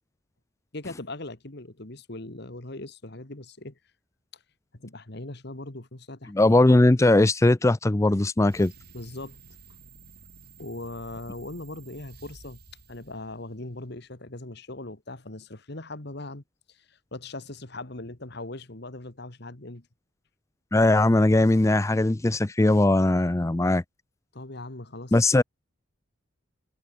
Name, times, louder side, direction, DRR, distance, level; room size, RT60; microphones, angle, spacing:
voice 1, 0.7-3.8 4.7-6.5 8.9-9.4 10.6-12.6 12.9-16.4 16.7-19.9 24.3-25.4, left 2 dB, 55° left, 1.9 m, -40 dB
voice 2, 6.3-8.7 20.7-23.8 25.1-25.4, left 2 dB, 15° left, 0.4 m, -20 dB
sound 1, 8.4-13.9, right 4 dB, 50° right, 7.8 m, -51 dB
head